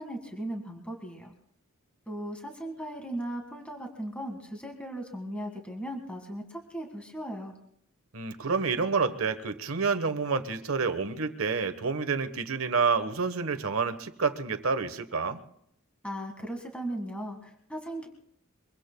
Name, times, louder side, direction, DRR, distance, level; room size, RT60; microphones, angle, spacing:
voice 1, 0.0-1.3 2.1-7.5 16.0-18.1, right 1 dB, 5° left, 2 dB, 1.8 m, -37 dB
voice 2, 8.1-15.4, right 5 dB, 75° right, 9 dB, 1.2 m, -28 dB
24.0 x 23.5 x 2.3 m, 0.72 s
head